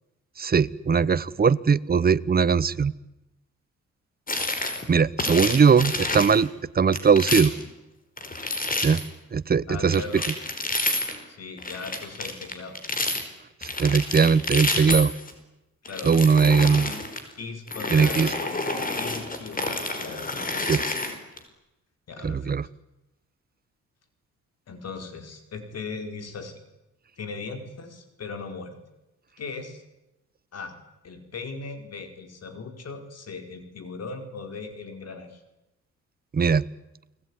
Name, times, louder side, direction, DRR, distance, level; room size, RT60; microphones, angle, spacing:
voice 1, 0.4-2.9 4.9-6.5 6.7-7.5 8.8-9.0 9.3-10.0 13.8-15.1 16.0-16.9 17.9-18.3 20.7-20.8 22.2-22.7 36.3-36.6, right 6 dB, 30° right, 18 dB, 1.0 m, -20 dB
sound 1, 4.3-4.9 5.2-6.4 6.9-7.6 8.2-9.0 9.9-11.2 11.6-13.2 13.6-15.3 15.8-17.2 17.7-21.4, left 2 dB, 30° left, 5.1 m, -29 dB
voice 2, 9.7-10.2 11.3-12.8 15.9-17.0 17.4-20.8 22.1-22.5 24.7-26.6 27.2-28.8 29.4-29.8 30.5-30.7 31.0-35.4, left 4 dB, 55° left, 7 dB, 4.9 m, -38 dB
29.5 x 20.0 x 10.0 m, 0.95 s
cardioid pair, 90°, 30 cm